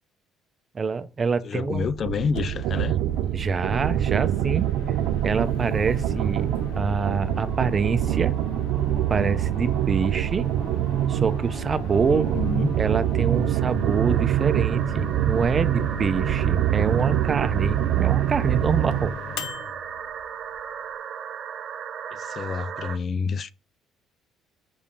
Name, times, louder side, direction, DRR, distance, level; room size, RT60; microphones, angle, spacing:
voice 1, 0.7-1.9 3.3-4.7 5.2-8.4 9.1-10.5 11.1-12.3 12.8-19.1, right 5 dB, 35° right, 0.6 m, -26 dB
voice 2, 1.4-3.0 12.1-12.8 22.1-23.5, left 6 dB, 45° left, 0.3 m, -28 dB
sound 1, 1.7-19.2, right 12 dB, 80° right, 0.4 m, -25 dB
Microwave oven, 2.1-21.0, left 7 dB, 85° left, 0.7 m, -39 dB
sound 2, 5.3-23.0, right 8 dB, 55° right, 0.9 m, -38 dB
6.2 x 3.5 x 5.7 m
cardioid pair, 90°, 0 cm